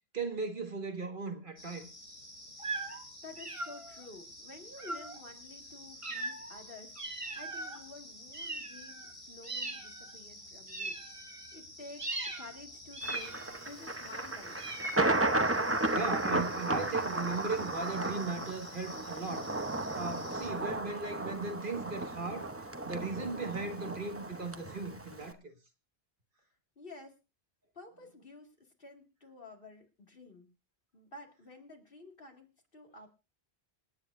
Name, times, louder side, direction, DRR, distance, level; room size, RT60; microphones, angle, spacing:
voice 1, 0.1-1.9 15.9-19.5 19.9-22.5 22.8-25.5, right 4 dB, 55° right, 1.9 m, -37 dB
sound 1, 1.6-20.5, left 1 dB, 85° left, 5.3 m, -51 dB
sound 2, 2.6-3.0 3.4-4.0 4.8-5.2 6.0-6.6 7.0-7.8 8.3-9.1 9.4-10.1 10.7-11.6 12.0-12.5 12.9-13.7 14.6-15.5, right 2 dB, 30° right, 1.4 m, -40 dB
voice 2, 2.8-11.0 11.2-13.4 13.6-14.6 26.8-27.2 27.7-30.5 30.9-33.1, left 2 dB, 60° left, 2.4 m, -51 dB
Thunder, 13.0-25.3, right 2 dB, 15° right, 0.8 m, -34 dB
26.5 x 9.1 x 2.6 m
omnidirectional pair, 1.1 m